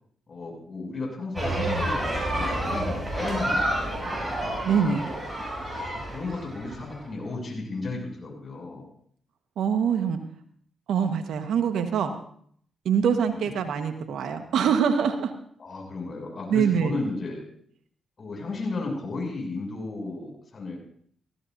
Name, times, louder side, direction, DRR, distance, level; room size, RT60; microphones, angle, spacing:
voice 1, 0.3-4.3 6.1-8.8 13.3-13.5 15.6-17.4 18.2-20.7, left 3 dB, 50° left, 0 dB, 7.2 m, -34 dB
sound 1, 1.4-6.9, right 1 dB, 25° right, 7.4 m, -29 dB
voice 2, 4.6-5.1 9.6-10.2 10.9-12.1 12.8-15.3 16.5-16.9, right 7 dB, 75° right, 7 dB, 1.4 m, -24 dB
19.5 x 16.0 x 2.7 m, 0.62 s
supercardioid pair, 45°, 0 cm